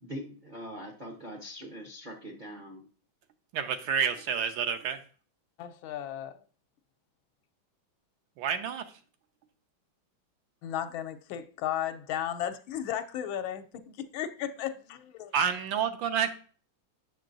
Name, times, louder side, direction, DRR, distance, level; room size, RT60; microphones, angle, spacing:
voice 1, 0.0-2.8, equal, 50° right, 0.5 m, -42 dB
voice 2, 3.5-5.0 8.4-8.8 15.3-16.3, right 7 dB, 75° right, 1.4 m, -29 dB
voice 3, 5.6-6.4 10.6-15.3, left 10 dB, 85° left, 1.4 m, -35 dB
7.6 x 6.7 x 2.6 m
omnidirectional pair, 2.2 m